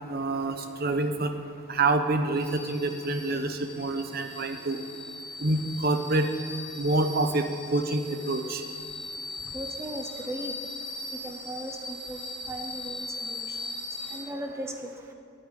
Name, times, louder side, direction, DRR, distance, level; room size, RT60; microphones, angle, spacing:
voice 1, 0.1-1.3 1.7-4.8 5.4-6.3 6.8-7.5 7.7-8.6, right 2 dB, 50° right, 7 dB, 0.9 m, -27 dB
sound 1, 2.4-14.2, left 2 dB, 5° left, 2.9 m, -39 dB
voice 2, 9.5-10.5 11.2-11.8 12.1-12.2 12.5-13.6 14.1-14.9, right 1 dB, 15° right, 3 dB, 0.7 m, -37 dB
10.0 x 8.9 x 8.2 m, 2.6 s
head